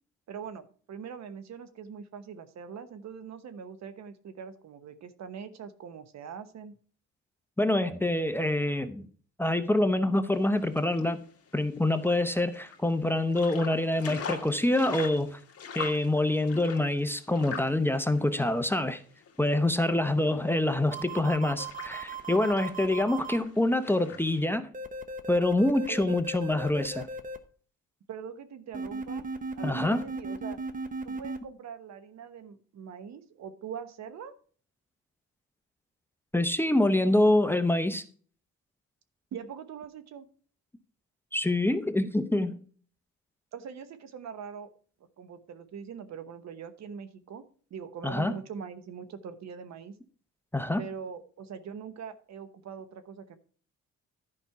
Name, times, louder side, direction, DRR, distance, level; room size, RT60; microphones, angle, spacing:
voice 1, 0.3-6.7 25.9-26.2 28.1-29.3 29.6-30.6 31.0-34.3 39.3-40.3 43.5-44.7 45.2-47.4 47.7-49.9 50.8-53.4, right 7 dB, 65° right, 1.0 m, -42 dB
voice 2, 7.6-9.1 9.4-11.2 11.5-15.4 15.8-19.0 19.4-24.7 25.3-27.1 29.6-30.0 36.3-38.0 41.3-42.6 48.0-48.3 50.5-50.8, left 1 dB, 5° left, 0.7 m, -26 dB
sound 1, 10.3-24.4, left 6 dB, 50° left, 1.7 m, -44 dB
sound 2, 20.9-23.4 24.7-27.4 28.7-31.4, right 3 dB, 25° right, 1.0 m, -37 dB
11.0 x 5.3 x 4.6 m
cardioid pair, 90°, 30 cm